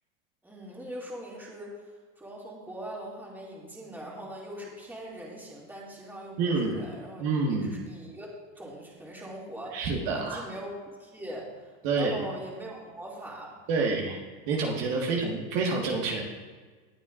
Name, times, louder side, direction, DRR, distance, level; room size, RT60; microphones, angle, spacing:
voice 1, 0.4-1.9 2.2-7.2 7.5-9.9 10.2-13.6, right 1 dB, 5° right, -5 dB, 2.5 m, -41 dB
voice 2, 6.4-6.8 7.2-7.8 9.7-10.5 11.8-12.2 13.7-14.2 14.5-16.2, right 4 dB, 60° right, -1 dB, 1.8 m, -28 dB
19.5 x 7.2 x 2.6 m, 1.4 s
supercardioid pair, 125°, 38 cm